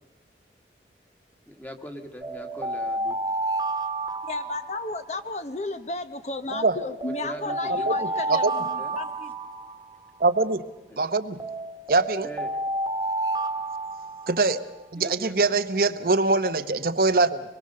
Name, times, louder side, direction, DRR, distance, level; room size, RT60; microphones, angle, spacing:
voice 1, 1.5-3.2 7.2-7.9 8.8-9.0 10.9-11.0 12.2-12.6 15.0-15.6, equal, 10° left, 6 dB, 1.6 m, -41 dB
sound 1, 2.2-5.4 6.5-10.3 11.4-14.6, right 2 dB, 25° right, 1.4 m, -30 dB
voice 2, 4.2-9.3, left 3 dB, 40° left, 10 dB, 0.8 m, -33 dB
voice 3, 10.2-10.6 11.0-11.4 11.9-12.3 14.3-14.6 14.9-17.4, right 3 dB, 55° right, 10 dB, 0.9 m, -22 dB
25.0 x 21.5 x 6.7 m, 1.1 s
head